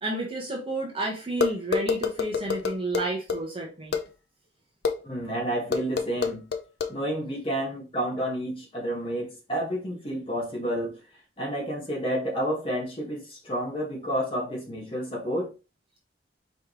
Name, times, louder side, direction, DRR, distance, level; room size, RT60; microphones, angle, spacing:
voice 1, 0.0-4.0, right 2 dB, 30° right, 1.1 m, -31 dB
sound 1, 1.4-3.4 3.9-4.0 4.8-5.0 5.7-6.9, left 5 dB, 60° left, 0.6 m, -26 dB
voice 2, 5.0-6.4 6.9-11.0 11.4-15.5, equal, 30° left, 1.5 m, -30 dB
4.8 x 3.3 x 3.0 m
head